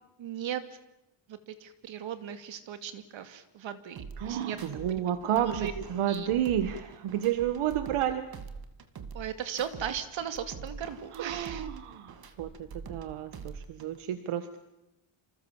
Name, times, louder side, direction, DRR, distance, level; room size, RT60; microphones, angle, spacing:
voice 1, 0.2-0.6 1.3-4.6 4.9-5.7 6.1-6.3 9.1-11.7, right 9 dB, 65° right, 10 dB, 2.5 m, -37 dB
sound 1, 4.0-4.9 5.2-8.1 8.3-9.9 10.2-13.0 13.3-14.0, right 5 dB, 45° right, 2.4 m, -44 dB
voice 2, 4.2-8.3 11.1-14.6, right 10 dB, 80° right, 10 dB, 1.6 m, -31 dB
27.5 x 27.5 x 7.2 m, 0.93 s
cardioid pair, 165°, 50 cm